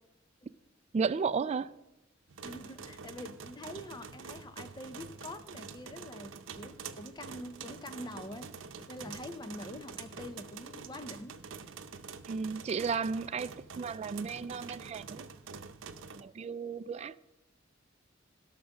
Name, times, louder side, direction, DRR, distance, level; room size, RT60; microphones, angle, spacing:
voice 1, 0.9-1.7 12.3-13.5 13.8-15.3 16.1-17.2, right 5 dB, 35° right, 0.3 m, -33 dB
sound 1, 2.3-16.2, right 5 dB, 85° right, 0.7 m, -46 dB
voice 2, 2.4-11.4, left 1 dB, 20° left, 0.6 m, -45 dB
16.5 x 6.0 x 6.4 m
head